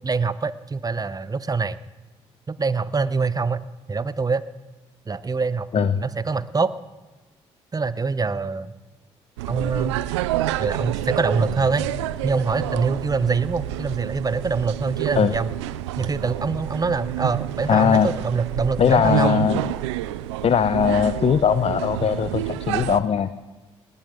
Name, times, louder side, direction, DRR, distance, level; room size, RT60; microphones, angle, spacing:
voice 1, 0.0-1.8 2.5-4.4 5.1-6.7 7.7-8.7 9.5-10.0 10.6-11.9 12.2-15.5 16.0-19.4, right 4 dB, 25° right, 16 dB, 0.8 m, -24 dB
sound 1, 9.4-23.0, right 14 dB, 85° right, 0.5 m, -29 dB
voice 2, 17.7-18.1 18.8-19.6 20.4-23.3, left 7 dB, 45° left, 13 dB, 0.7 m, -20 dB
19.5 x 17.0 x 3.8 m, 1.2 s
hypercardioid pair, 45°, 14 cm